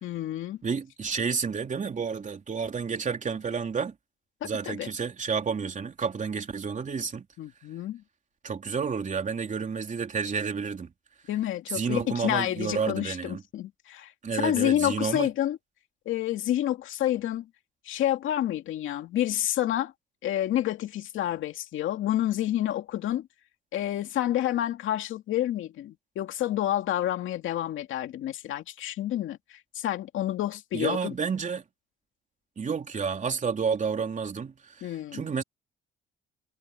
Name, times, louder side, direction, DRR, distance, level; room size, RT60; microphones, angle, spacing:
voice 1, 0.0-0.6 4.4-4.9 7.4-8.0 11.3-14.1 14.4-15.6 16.1-17.5 17.9-19.9 20.2-23.3 23.7-31.1 34.8-35.3, left 12 dB, 80° left, 2.4 m, -29 dB
voice 2, 0.6-3.9 4.4-7.3 8.4-10.9 11.7-13.4 14.2-15.3 30.7-31.6 32.6-35.4, right 6 dB, 40° right, 3.2 m, -30 dB
cardioid pair, 90°, 20 cm